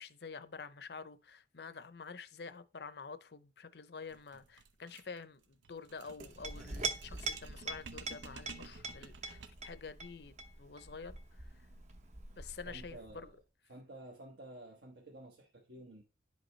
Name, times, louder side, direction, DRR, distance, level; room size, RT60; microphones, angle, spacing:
voice 1, 0.0-11.7 12.4-13.3, left 5 dB, 60° left, 0.6 m, -48 dB
sound 1, 4.1-9.8, right 4 dB, 85° right, 0.7 m, -53 dB
Chink clink, 6.2-13.3, right 3 dB, 40° right, 0.8 m, -44 dB
voice 2, 12.6-13.4 13.7-16.0, right 1 dB, 70° right, 1.2 m, -52 dB
10.5 x 5.3 x 3.2 m
head